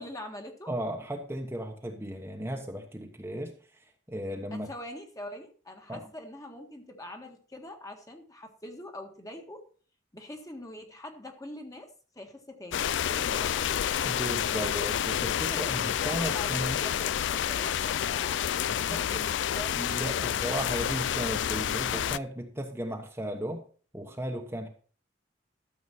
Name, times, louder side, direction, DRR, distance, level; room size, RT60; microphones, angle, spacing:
voice 1, 0.0-0.7 4.3-9.7 10.1-13.7 15.5-19.8, left 1 dB, 20° left, 3 dB, 1.6 m, -44 dB
voice 2, 0.7-4.7 5.9-6.0 14.0-16.8 18.7-19.0 19.8-23.6 23.9-24.7, right 1 dB, 15° right, 2 dB, 1.1 m, -35 dB
sound 1, 12.7-22.2, left 9 dB, 75° left, 0.4 m, -29 dB
13.0 x 7.1 x 4.3 m, 0.41 s
head